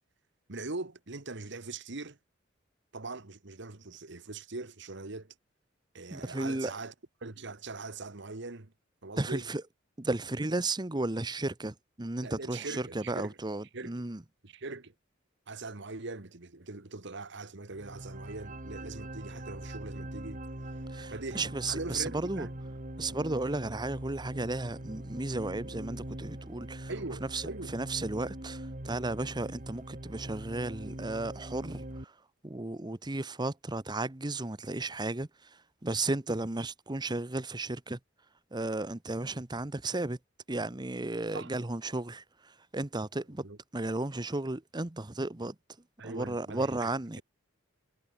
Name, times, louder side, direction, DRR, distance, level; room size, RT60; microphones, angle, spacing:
voice 1, 0.5-2.2 2.9-5.3 5.9-6.9 7.2-8.7 9.0-9.5 12.2-13.4 13.7-14.0 14.4-14.9 15.5-20.4 21.1-21.4 21.7-22.6 26.9-27.8 41.3-41.5 43.4-43.6 46.0-46.9, right 3 dB, 60° right, 1.5 m, -41 dB
voice 2, 6.1-6.7 9.2-9.6 10.0-14.2 20.9-22.5 23.0-26.9 27.3-27.4 27.7-32.1 32.4-35.5 35.8-38.0 38.5-40.2 40.5-43.5 43.7-45.5 46.0-47.2, right 2 dB, 20° right, 0.9 m, -34 dB
sound 1, 17.7-32.1, right 1 dB, 40° right, 2.7 m, -42 dB
head